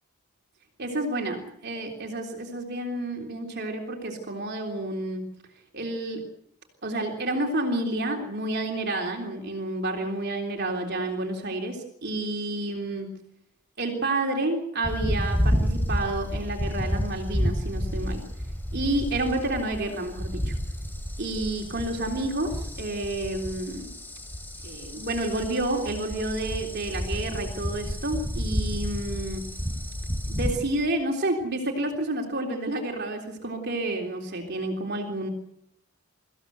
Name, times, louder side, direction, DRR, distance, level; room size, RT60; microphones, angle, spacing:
voice 1, 0.8-5.3 5.7-6.3 6.8-13.2 13.8-18.2 18.7-20.6 21.2-23.9 24.6-29.4 30.3-35.3, right 2 dB, 50° right, 1 dB, 3.5 m, -30 dB
sound 1, 14.8-30.5, equal, 10° left, 3.5 m, -30 dB
24.0 x 16.0 x 8.1 m, 0.75 s
head